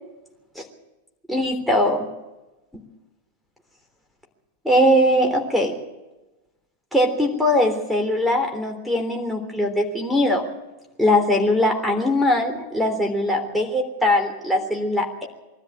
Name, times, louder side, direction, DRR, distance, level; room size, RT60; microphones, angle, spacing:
voice 1, 1.3-2.1 4.6-5.8 6.9-10.4 11.0-15.3, left 1 dB, ahead, 3 dB, 3.5 m, -21 dB
23.0 x 13.0 x 8.7 m, 1.1 s
figure-of-eight pair, 90°, 0 cm